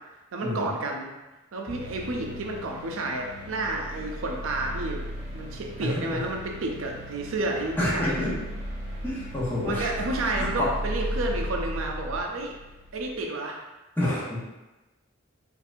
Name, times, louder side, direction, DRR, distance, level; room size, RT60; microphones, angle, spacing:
voice 1, 0.3-1.1 1.5-5.0 5.3-8.3 9.6-12.5 12.9-13.6, right 2 dB, 80° right, 1 dB, 0.5 m, -31 dB
sound 1, 1.7-13.2, equal, 55° right, 0.9 m, -36 dB
voice 2, 5.8-6.2 7.8-8.3 9.0-9.9 10.3-10.7 14.0-14.4, left 1 dB, 10° left, -9 dB, 1.0 m, -28 dB
4.1 x 2.6 x 2.5 m, 1.1 s
head